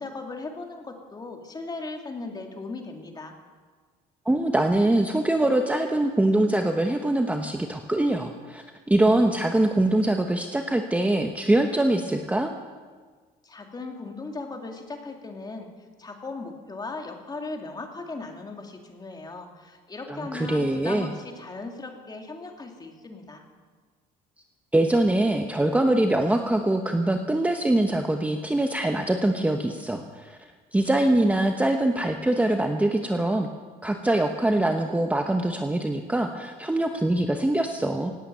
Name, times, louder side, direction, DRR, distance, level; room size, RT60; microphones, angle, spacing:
voice 1, 0.0-3.3 13.4-15.7 16.0-23.4, left 3 dB, 25° left, 3 dB, 2.4 m, -37 dB
voice 2, 4.3-12.5 20.1-21.1 24.7-30.4 30.7-33.5 33.8-38.1, right 1 dB, 10° right, 5 dB, 1.0 m, -23 dB
17.5 x 8.9 x 8.8 m, 1.5 s
cardioid pair, 110°, 17 cm